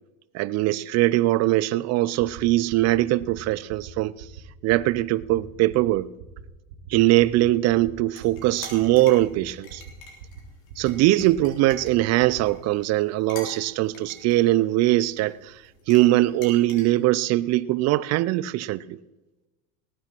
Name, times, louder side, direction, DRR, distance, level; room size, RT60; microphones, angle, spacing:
voice 1, 0.3-4.1 4.6-6.1 6.9-9.8 10.8-15.5 15.9-19.0, right 16 dB, 40° right, 0.5 m, -21 dB
sound 1, 2.3-2.4 2.7-2.9 3.2-3.4 3.7-3.9 4.2-4.4 4.7-4.9 5.2-5.4 5.7-5.9 6.2-6.4 6.7-6.9 7.2-7.4 7.7-7.9 8.2-8.4 8.7-8.9 9.2-9.4 9.7-9.9 10.2-10.4 10.7-10.9 11.2-11.4 11.7-11.9 12.2-12.4, right 9 dB, 75° right, 2.3 m, -42 dB
sound 2, 8.1-16.8, left 3 dB, 85° left, 3.7 m, -46 dB
19.0 x 8.8 x 4.5 m
supercardioid pair, 105°, 40 cm